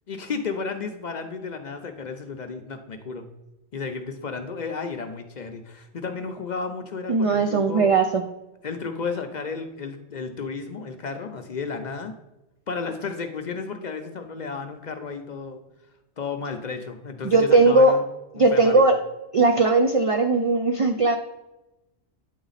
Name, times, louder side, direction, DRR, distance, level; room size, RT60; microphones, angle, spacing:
voice 1, 0.1-3.3 3.7-7.9 8.6-12.1 12.7-15.6 16.2-18.1 18.3-18.8, left 5 dB, 50° left, 6 dB, 0.6 m, -33 dB
voice 2, 7.1-8.2 17.2-17.9 18.4-19.0 19.3-21.2, right 3 dB, 65° right, 5 dB, 0.3 m, -18 dB
9.2 x 4.0 x 4.0 m, 0.96 s
omnidirectional pair, 1.1 m